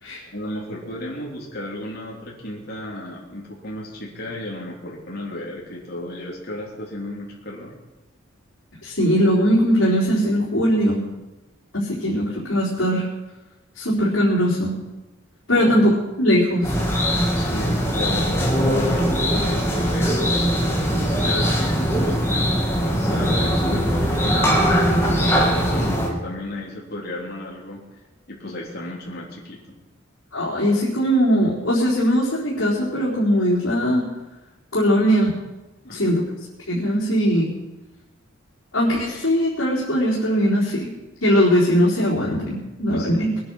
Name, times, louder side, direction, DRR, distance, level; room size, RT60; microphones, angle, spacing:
voice 1, 0.3-7.7 15.5-15.8 17.3-20.4 21.1-27.8 28.3-29.6 35.8-36.0 42.9-43.1, left 1 dB, 50° left, -4 dB, 3.7 m, -33 dB
voice 2, 8.8-11.0 11.7-13.1 13.8-14.7 15.5-16.7 30.3-34.0 34.7-35.3 35.9-36.2 36.7-37.5 38.7-40.9 41.2-43.3, equal, 75° left, -7 dB, 4.3 m, -20 dB
sound 1, 16.6-26.1, equal, 10° left, 2.4 m, -21 dB
21.5 x 10.5 x 6.4 m, 1.1 s
head